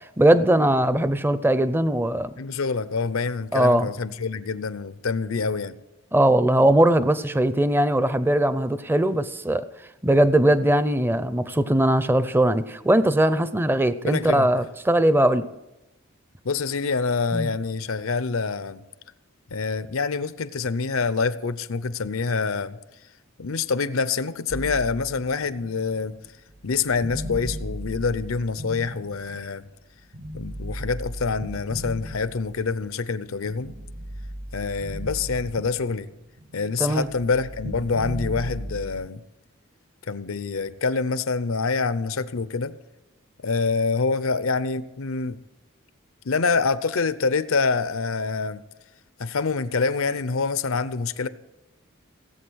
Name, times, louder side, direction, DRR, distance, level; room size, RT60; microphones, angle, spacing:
voice 1, 0.2-2.3 3.5-3.9 6.1-9.6 10.0-15.5 17.3-17.5 36.8-37.1, right 1 dB, 10° right, 13 dB, 0.5 m, -20 dB
voice 2, 2.4-5.7 14.0-14.5 16.4-18.8 19.5-22.8 23.4-26.2 26.6-29.6 30.3-33.7 34.5-36.1 36.5-39.2 40.1-42.8 43.4-45.4 46.2-48.6 49.2-51.3, left 4 dB, 80° left, 15 dB, 0.7 m, -26 dB
sound 1, 24.5-29.6 30.1-32.8 33.3-36.1 36.4-39.1, equal, 65° right, 1.3 m, -36 dB
17.5 x 8.3 x 6.3 m, 0.96 s
head